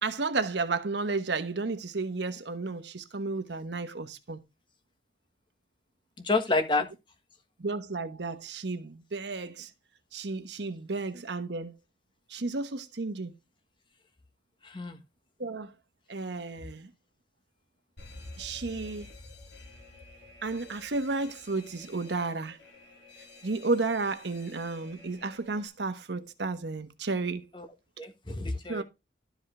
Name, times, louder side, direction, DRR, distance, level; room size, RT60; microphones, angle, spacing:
voice 1, 0.0-4.4 7.6-9.7 10.1-11.7 12.3-13.3 15.4-15.7 16.1-16.9 18.4-19.1 20.4-22.6 23.4-27.5 28.7-28.8, right 3 dB, 75° right, 1.0 m, -32 dB
voice 2, 6.2-6.9 14.6-15.0 27.5-27.7 28.0-28.8, left 3 dB, 25° left, 1.3 m, -29 dB
Alarm, 18.0-25.7, left 2 dB, 85° left, 3.5 m, -50 dB
12.5 x 5.0 x 3.7 m
head